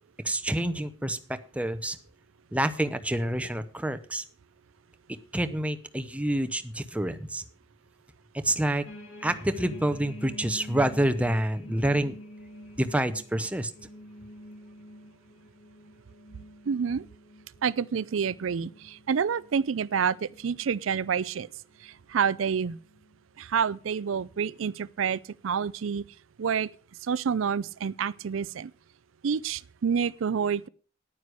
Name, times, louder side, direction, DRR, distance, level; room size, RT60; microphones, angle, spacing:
voice 1, 0.2-2.0 2.5-4.2 5.1-7.4 8.4-8.9 9.2-12.2 12.8-13.7, right 1 dB, 5° right, 0.7 m, -28 dB
sound 1, 8.9-21.2 21.7-22.0 22.4-23.1 23.8-23.9, left 1 dB, 80° left, 2.6 m, -48 dB
voice 2, 16.7-17.0 17.6-21.5 21.8-22.8 23.4-26.0 26.4-26.7 27.0-28.7 29.2-30.7, right 6 dB, 85° right, 0.5 m, -28 dB
9.9 x 9.5 x 6.3 m
head